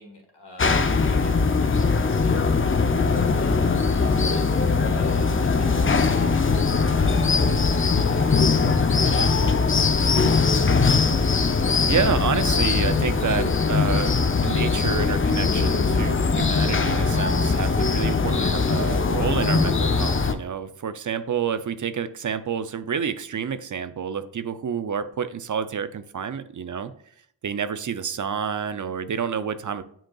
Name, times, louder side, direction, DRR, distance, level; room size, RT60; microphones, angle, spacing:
voice 1, 0.0-8.3 9.2-10.5, left 2 dB, 85° left, 1 dB, 1.9 m, -42 dB
sound 1, 0.6-20.3, left 4 dB, 30° left, 0.5 m, -21 dB
voice 2, 8.7-9.1 11.9-26.9 27.4-29.8, right 7 dB, 50° right, 13 dB, 0.5 m, -29 dB
8.8 x 5.1 x 2.3 m, 0.64 s
wide cardioid pair, 95°, 40 cm